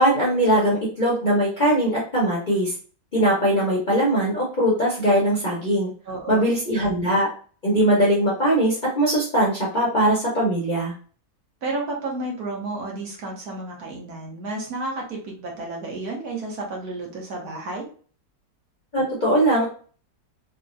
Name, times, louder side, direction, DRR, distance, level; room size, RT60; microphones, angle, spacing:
voice 1, 0.0-2.7 3.1-5.9 6.3-7.3 7.6-10.9 18.9-19.7, right 1 dB, 40° left, -7 dB, 0.7 m, -20 dB
voice 2, 6.1-6.5 11.6-17.8, right 2 dB, 65° right, -1 dB, 1.4 m, -31 dB
3.6 x 2.1 x 2.5 m, 0.41 s
omnidirectional pair, 1.8 m